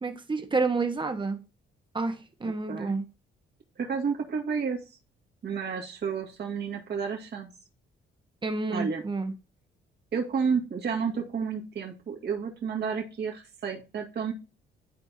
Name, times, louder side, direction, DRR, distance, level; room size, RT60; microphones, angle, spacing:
voice 1, 0.0-1.4 1.9-3.0 8.4-9.3, right 3 dB, 25° right, 1.4 m, -29 dB
voice 2, 3.8-5.0 5.4-7.5 8.7-9.0 10.1-14.3, right 6 dB, 55° right, 2.3 m, -31 dB
12.5 x 4.5 x 2.9 m
cardioid pair, 90°, 20 cm